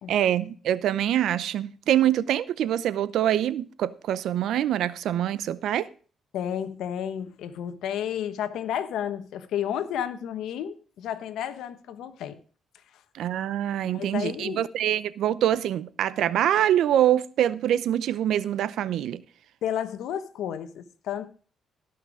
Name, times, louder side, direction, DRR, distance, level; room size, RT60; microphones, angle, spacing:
voice 1, 0.1-5.9 13.1-19.2, right 11 dB, 75° right, 0.6 m, -25 dB
voice 2, 6.3-12.4 13.8-14.6 19.6-21.3, left 9 dB, 80° left, 1.2 m, -32 dB
17.5 x 5.9 x 4.9 m
cardioid pair, 90°, 0 cm